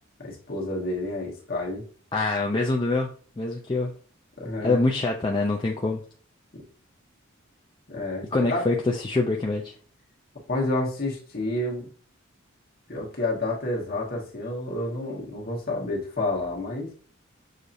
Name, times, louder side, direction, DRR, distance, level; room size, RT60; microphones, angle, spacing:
voice 1, 0.2-1.8 4.4-4.8 6.5-6.6 7.9-8.6 10.5-11.9 12.9-16.9, left 2 dB, 45° left, -2 dB, 1.3 m, -29 dB
voice 2, 2.1-3.1 3.4-3.9 4.6-6.0 8.3-9.7, left 2 dB, 25° left, 0 dB, 0.4 m, -25 dB
6.3 x 2.7 x 2.5 m, 0.42 s
head